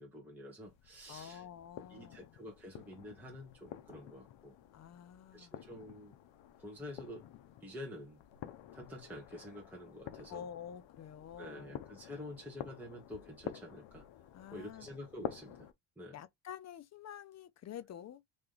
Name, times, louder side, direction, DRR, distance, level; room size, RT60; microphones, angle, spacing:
voice 1, 0.0-1.4 1.9-4.5 5.3-6.1 6.6-7.2 7.6-8.2 8.7-10.4 11.4-14.0 14.5-15.7 16.0-16.2, left 1 dB, 5° right, 1.0 m, -48 dB
sound 1, 0.6-15.7, left 11 dB, 65° left, 0.7 m, -50 dB
voice 2, 1.1-2.4 4.7-5.6 10.3-11.8 14.3-15.0 16.1-18.2, left 9 dB, 35° left, 0.4 m, -48 dB
3.2 x 2.9 x 3.8 m
cardioid pair, 135°, 50 cm